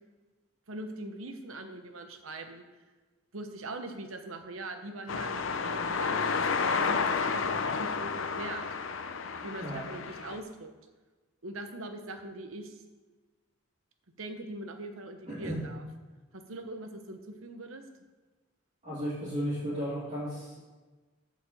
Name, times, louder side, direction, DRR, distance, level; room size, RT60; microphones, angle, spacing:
voice 1, 0.7-2.6 3.3-8.7 9.4-10.7 11.4-12.8 14.2-15.8 16.3-17.8, right 2 dB, 85° right, 6 dB, 1.1 m, -42 dB
sound 1, 5.1-10.4, left 5 dB, 70° left, 0.6 m, -31 dB
voice 2, 15.3-15.6 18.8-20.6, equal, 40° right, -12 dB, 3.6 m, -34 dB
8.5 x 5.3 x 7.8 m, 1.3 s
head